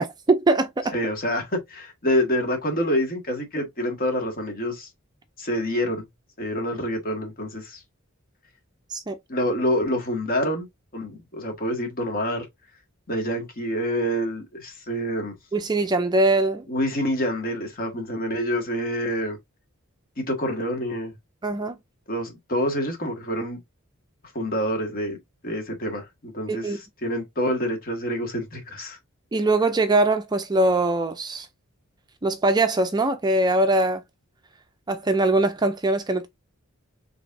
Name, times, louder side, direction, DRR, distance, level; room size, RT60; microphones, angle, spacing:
voice 1, 0.0-0.9 8.9-9.2 15.5-16.7 21.4-21.8 26.5-26.8 29.3-31.5 32.2-34.0 34.9-36.3, right 2 dB, 20° right, 0.4 m, -22 dB
voice 2, 0.9-4.9 5.4-6.1 6.4-7.8 9.3-10.7 10.9-12.5 13.1-15.3 16.7-19.4 20.2-21.1 22.1-23.6 24.3-25.2 25.4-29.0, equal, 45° left, 1.7 m, -27 dB
4.9 x 3.4 x 2.6 m
head